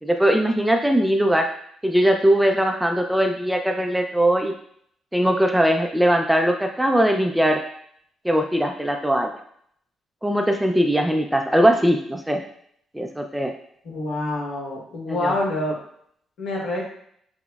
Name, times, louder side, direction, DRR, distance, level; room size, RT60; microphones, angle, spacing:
voice 1, 0.0-1.5 1.8-4.5 5.1-7.6 8.2-9.3 10.2-12.4 12.9-13.5 15.1-15.4, equal, 5° right, 4 dB, 0.3 m, -20 dB
voice 2, 13.8-15.8 16.4-16.8, left 2 dB, 70° left, -2 dB, 1.2 m, -26 dB
5.8 x 2.1 x 2.3 m, 0.66 s
cardioid pair, 90°, 0 cm